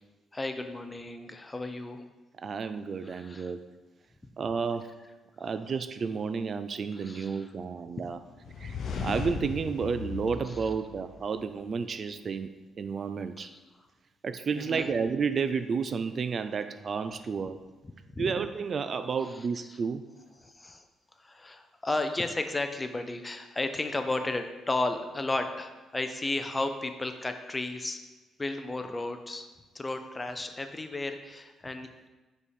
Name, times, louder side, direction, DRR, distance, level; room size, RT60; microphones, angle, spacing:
voice 1, 0.3-2.1 3.0-3.5 5.4-5.5 6.9-7.5 7.9-8.0 10.4-10.6 13.4-13.6 14.5-14.9 18.2-18.3 19.3-19.8 20.4-20.8 21.2-28.0 28.4-29.5 29.7-32.1, left 2 dB, 20° left, 7 dB, 0.6 m, -34 dB
voice 2, 2.4-3.6 4.4-4.9 5.4-8.2 8.6-13.5 14.2-17.6 18.2-20.0, right 5 dB, 45° right, 11 dB, 0.3 m, -31 dB
sound 1, 8.4-11.4, left 5 dB, 65° left, 0.7 m, -37 dB
5.3 x 4.2 x 4.8 m, 1.2 s
cardioid pair, 90°, 0 cm